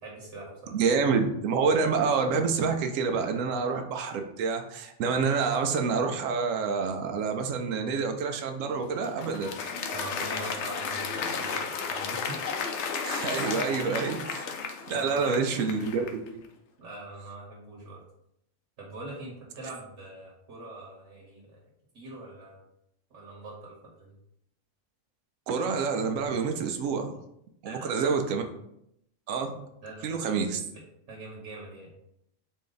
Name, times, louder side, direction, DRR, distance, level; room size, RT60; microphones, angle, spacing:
voice 1, 0.0-0.7 9.9-12.4 14.1-14.3 14.9-15.4 16.8-18.0 18.8-21.6 21.9-22.6 23.1-24.2 27.6-28.0 29.8-30.4 30.7-30.8 31.1-31.9, right 2 dB, 65° right, -3 dB, 1.3 m, -43 dB
voice 2, 0.7-9.5 13.0-14.5 14.9-16.4 25.5-27.1 27.6-28.4 29.3-29.5 30.0-30.6, right 5 dB, 85° right, 5 dB, 1.0 m, -27 dB
Applause, 8.7-16.3, left 5 dB, 70° left, 0.8 m, -34 dB
4.2 x 2.6 x 3.8 m, 0.78 s
omnidirectional pair, 1.3 m